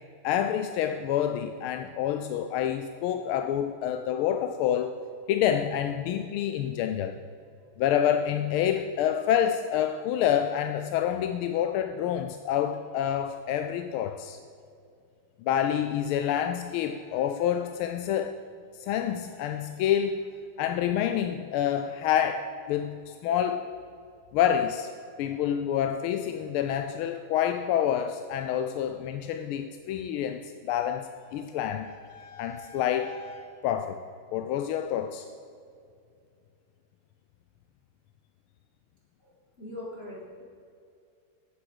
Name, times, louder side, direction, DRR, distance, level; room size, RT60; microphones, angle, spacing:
voice 1, 0.2-5.0 5.3-7.2 7.8-14.4 15.4-18.4 18.7-23.7 24.3-24.9 25.2-34.0 34.3-35.3, left 9 dB, 80° left, 7 dB, 1.4 m, -28 dB
voice 2, 39.6-40.4, left 1 dB, 30° left, -4 dB, 1.7 m, -41 dB
9.4 x 7.4 x 7.8 m, 2.4 s
omnidirectional pair, 2.4 m